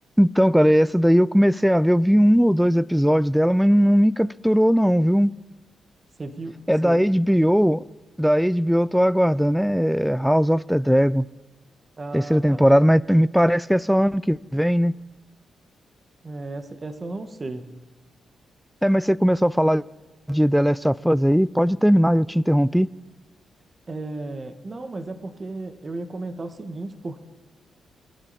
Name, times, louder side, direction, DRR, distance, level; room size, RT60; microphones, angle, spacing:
voice 1, 0.2-5.3 6.7-7.8 8.2-11.2 12.1-14.9 18.8-19.8 20.3-22.9, equal, ahead, 0.4 m, -19 dB
voice 2, 6.2-6.5 6.8-7.0 12.0-12.6 16.2-17.7 23.9-27.2, right 2 dB, 40° right, 1.4 m, -34 dB
24.0 x 10.0 x 4.2 m
supercardioid pair, 60°, 0 cm